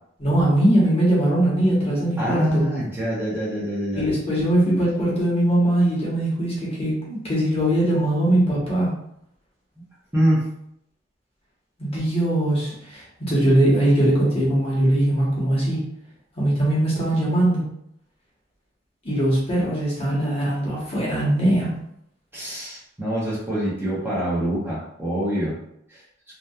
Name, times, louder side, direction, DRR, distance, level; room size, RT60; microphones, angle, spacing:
voice 1, 0.2-2.6 3.9-8.9 11.8-15.8 16.4-17.6 19.0-21.7, right 1 dB, 30° left, -6 dB, 0.9 m, -21 dB
voice 2, 2.2-4.1 10.1-10.5 22.3-25.6 25.9-26.0, equal, 10° right, -8 dB, 0.7 m, -25 dB
2.8 x 2.2 x 2.3 m, 0.73 s
head